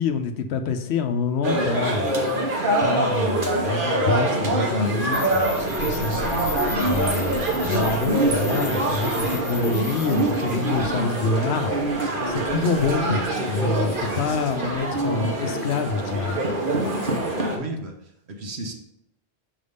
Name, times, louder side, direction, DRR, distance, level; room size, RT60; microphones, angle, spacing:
voice 1, 0.0-2.1 2.8-6.2 6.8-11.7 12.0-16.4 16.8-16.9, left 4 dB, 85° left, 8 dB, 0.9 m, -27 dB
sound 1, 1.4-17.6, right 1 dB, 55° right, 1.2 m, -24 dB
sound 2, 5.1-10.9, left 5 dB, 55° left, 1.2 m, -36 dB
voice 2, 17.5-18.7, right 2 dB, 80° right, 2 dB, 1.2 m, -34 dB
5.7 x 3.4 x 5.3 m, 0.80 s
omnidirectional pair, 1.1 m